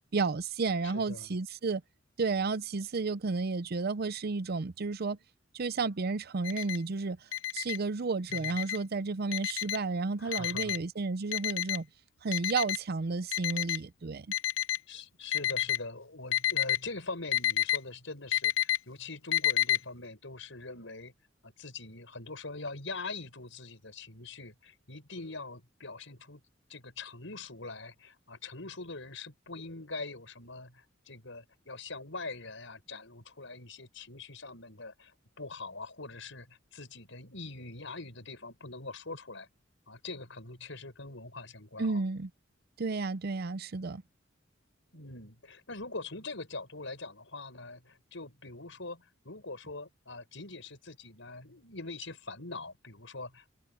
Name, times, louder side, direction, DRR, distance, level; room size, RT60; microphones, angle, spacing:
voice 1, 0.1-1.8 2.2-5.2 5.5-7.2 7.5-11.9 12.2-14.3 41.8-42.3 42.8-44.0, right 4 dB, 55° right, 0.6 m, -32 dB
voice 2, 0.8-1.3 8.3-8.6 10.2-10.8 14.9-21.1 21.4-26.4 26.7-39.5 39.9-42.0 44.9-53.5, left 3 dB, 70° left, 7.6 m, -43 dB
Alarm, 6.4-6.8 7.3-7.8 8.3-8.8 9.3-9.8 10.3-10.8 11.3-11.8 12.3-12.8 13.3-13.8 14.3-14.8 15.3-15.8 16.3-16.8 17.3-17.8 18.3-18.8 19.3-19.8, left 12 dB, 85° left, 0.7 m, -29 dB
head